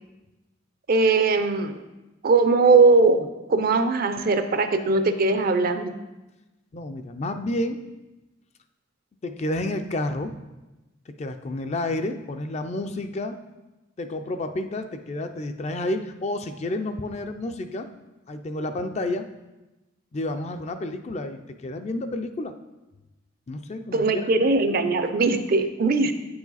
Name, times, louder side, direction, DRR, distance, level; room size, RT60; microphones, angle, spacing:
voice 1, 0.9-1.8 2.2-5.9 23.9-26.1, right 3 dB, 50° right, 9 dB, 0.5 m, -20 dB
voice 2, 6.7-7.8 9.2-10.3 11.2-13.4 14.0-17.9 18.3-19.3 20.1-22.5 23.5-24.3, left 1 dB, 35° left, 8 dB, 0.4 m, -30 dB
8.5 x 4.8 x 4.0 m, 1.1 s
head